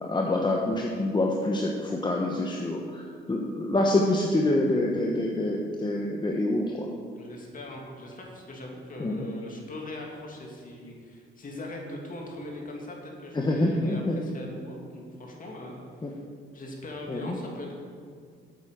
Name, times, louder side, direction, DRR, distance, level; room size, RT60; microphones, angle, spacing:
voice 1, 0.0-6.9 9.0-9.3 13.3-14.2 16.0-16.1 17.1-17.4, left 1 dB, 20° left, 0 dB, 1.1 m, -26 dB
voice 2, 7.1-16.2 16.5-17.8, left 1 dB, 45° left, 0 dB, 2.7 m, -40 dB
9.0 x 8.2 x 6.7 m, 2.1 s
cardioid pair, 90°, 20 cm